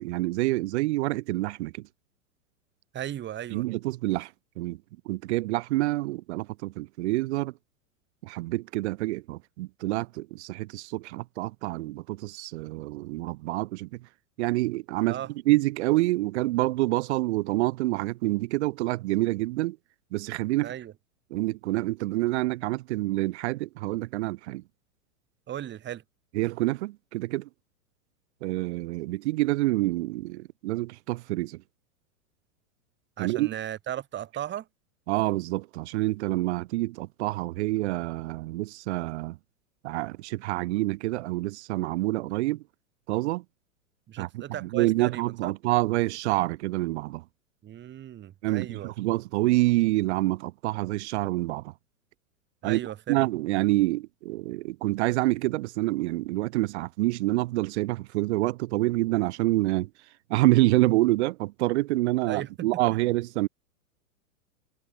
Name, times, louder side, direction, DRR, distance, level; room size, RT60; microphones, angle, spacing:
voice 1, 0.0-1.8 3.5-4.3 4.6-4.8 5.1-7.5 8.2-13.9 14.4-15.2 15.5-19.8 20.1-20.7 21.3-24.6 26.3-27.5 28.4-31.6 33.2-33.5 35.1-39.4 39.8-42.6 43.1-43.4 44.2-47.2 48.4-51.7 52.6-52.8 53.1-59.9 60.3-63.5, right 19 dB, 50° right, 0.8 m, -27 dB
voice 2, 2.9-3.6 15.1-15.3 20.6-20.9 25.5-26.0 33.2-34.7 44.1-45.5 47.6-48.9 52.6-53.2 62.3-62.8, right 11 dB, 25° right, 2.4 m, -36 dB
hypercardioid pair, 105°, 43 cm